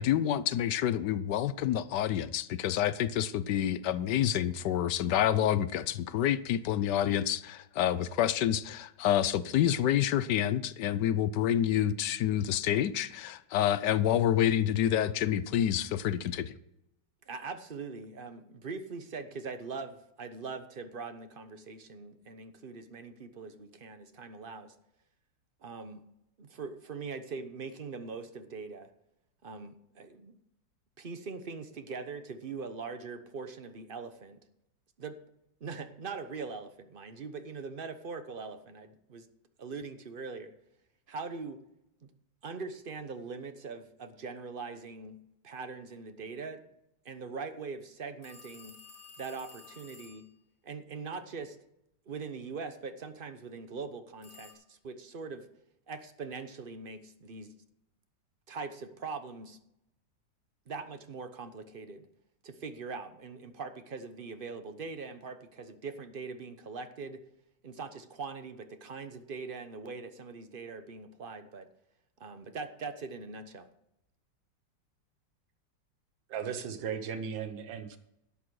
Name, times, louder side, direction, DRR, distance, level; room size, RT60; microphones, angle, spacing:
voice 1, 0.0-16.5, left 11 dB, 70° left, 1.2 m, -28 dB
voice 2, 17.3-24.7 25.6-26.0 26.4-28.9 29.4-30.3 31.0-34.4 35.0-35.2 35.6-39.3 39.6-40.5 41.1-41.6 42.0-42.1 42.4-45.2 45.4-46.6 47.0-48.7 49.2-50.2 50.6-51.6 52.1-55.5 55.9-57.5 58.5-59.6 60.7-62.1 62.4-67.2 67.6-71.7 72.2-73.7, right 4 dB, 40° right, 0.8 m, -42 dB
sound 1, 48.2-50.3 54.2-54.5, left 4 dB, 35° left, 2.1 m, -52 dB
voice 3, 76.3-78.0, right 7 dB, 85° right, 1.7 m, -36 dB
12.5 x 8.4 x 4.8 m
omnidirectional pair, 2.0 m